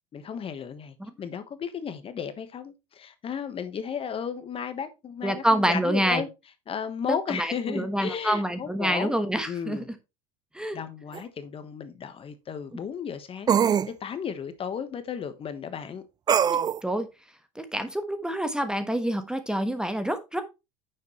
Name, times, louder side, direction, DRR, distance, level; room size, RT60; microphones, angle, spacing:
voice 1, 0.1-6.3 6.7-9.1 9.5-9.9 10.7-13.7 14.0-16.0, left 7 dB, 30° left, 1.2 m, -34 dB
voice 2, 5.2-6.2 7.3-9.8 10.5-10.8 16.4-17.1 17.5-20.4, right 1 dB, 5° right, 1.2 m, -27 dB
sound 1, 11.1-11.2 13.5-13.9 16.3-16.8, right 8 dB, 25° right, 0.4 m, -22 dB
9.4 x 6.8 x 3.1 m
supercardioid pair, 115°, 18 cm